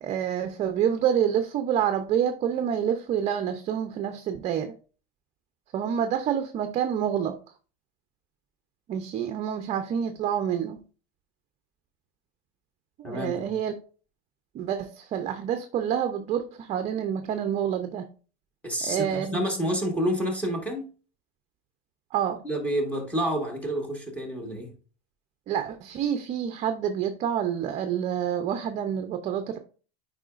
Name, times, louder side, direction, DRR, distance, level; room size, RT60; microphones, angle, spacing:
voice 1, 0.0-4.7 5.7-7.4 8.9-10.8 13.0-13.7 14.5-18.1 18.8-19.5 22.1-22.4 25.5-29.6, right 9 dB, 35° right, 0.6 m, -27 dB
voice 2, 18.6-20.8 22.4-24.7, equal, 5° left, 1.6 m, -29 dB
8.8 x 4.9 x 2.5 m
supercardioid pair, 145°, 20 cm